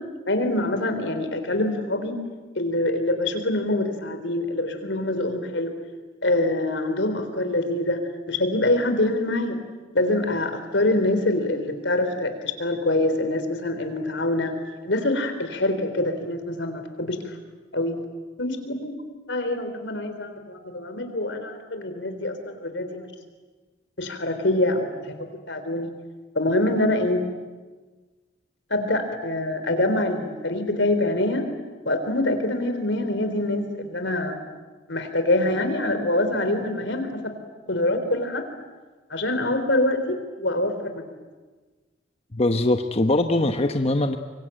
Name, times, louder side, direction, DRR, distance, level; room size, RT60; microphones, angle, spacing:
voice 1, 0.3-2.2 2.6-5.8 6.2-8.0 8.3-9.6 9.9-14.5 14.8-17.3 17.7-18.0 18.4-19.0 19.3-23.1 24.0-25.9 26.4-27.2 28.7-31.5 31.9-34.4 34.9-37.3 37.7-38.4 39.1-41.0, left 1 dB, 80° left, 8 dB, 3.7 m, -25 dB
voice 2, 42.3-44.2, left 2 dB, 35° left, 6 dB, 1.0 m, -22 dB
24.5 x 23.5 x 9.0 m, 1.3 s
head